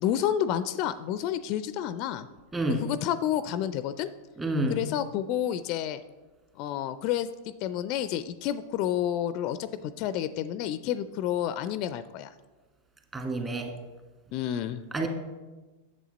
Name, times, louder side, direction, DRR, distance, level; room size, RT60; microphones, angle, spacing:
voice 1, 0.0-2.3 2.8-4.1 4.7-6.0 6.6-7.3 7.6-12.3 14.3-14.8, left 10 dB, 45° left, 13 dB, 0.4 m, -30 dB
voice 2, 2.5-2.8 4.4-4.8 13.1-13.7 14.9-15.1, right 2 dB, 20° right, 2 dB, 1.7 m, -28 dB
8.4 x 7.2 x 4.0 m, 1.2 s
hypercardioid pair, 95°, 0 cm